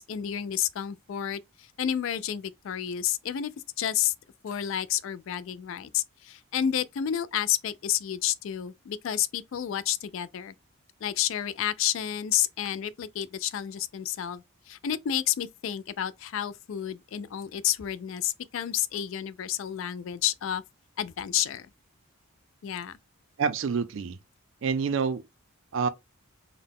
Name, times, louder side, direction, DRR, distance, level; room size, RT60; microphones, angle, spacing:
voice 1, 0.0-3.5 3.8-4.1 4.4-10.5 11.0-20.6 21.0-21.7 22.6-23.0, left 10 dB, 65° left, 0.3 m, -30 dB
voice 2, 23.4-24.2 24.6-25.2 25.7-25.9, right 5 dB, 60° right, 0.4 m, -27 dB
3.9 x 2.1 x 3.5 m
head